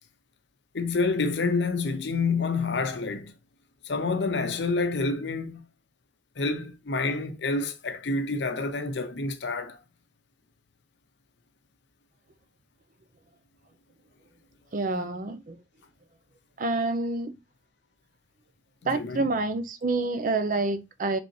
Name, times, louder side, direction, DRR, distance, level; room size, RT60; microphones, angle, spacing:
voice 1, 0.7-3.3 3.8-5.6 6.4-9.8 18.9-19.2, left 3 dB, 80° left, 0.7 m, -28 dB
voice 2, 14.7-15.6 16.6-17.4 18.9-21.2, right 3 dB, 50° right, 0.5 m, -28 dB
4.3 x 3.4 x 2.7 m
head